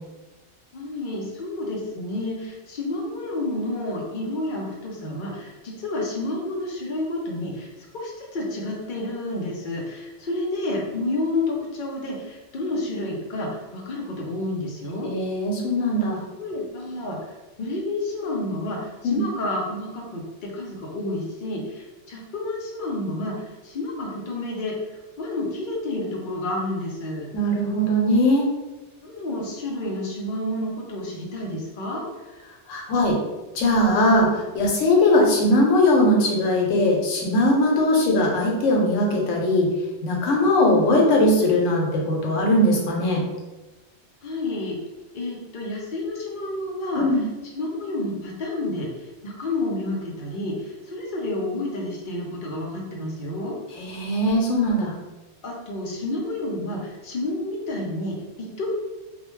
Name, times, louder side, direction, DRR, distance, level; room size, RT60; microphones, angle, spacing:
voice 1, 0.7-7.7 7.9-15.1 16.4-17.2 17.6-24.8 25.2-27.3 29.0-32.0 44.2-44.8 45.1-47.1 47.5-53.6 55.4-58.7, left 2 dB, 55° left, -2 dB, 0.6 m, -30 dB
voice 2, 15.0-16.2 19.0-19.2 27.3-28.5 32.7-33.2 33.5-39.7 40.0-43.3 47.0-47.2 53.8-54.9, left 1 dB, 80° left, -1 dB, 1.0 m, -20 dB
2.3 x 2.1 x 3.0 m, 1.1 s
omnidirectional pair, 1.3 m